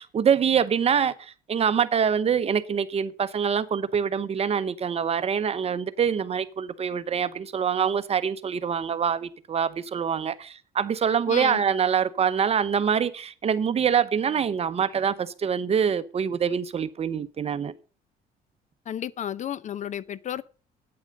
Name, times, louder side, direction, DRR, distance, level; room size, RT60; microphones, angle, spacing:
voice 1, 0.0-17.7, right 7 dB, 35° right, 0.9 m, -25 dB
voice 2, 11.3-11.6 18.9-20.4, left 10 dB, 45° left, 0.6 m, -32 dB
8.8 x 8.8 x 6.6 m
cardioid pair, 110°, 17 cm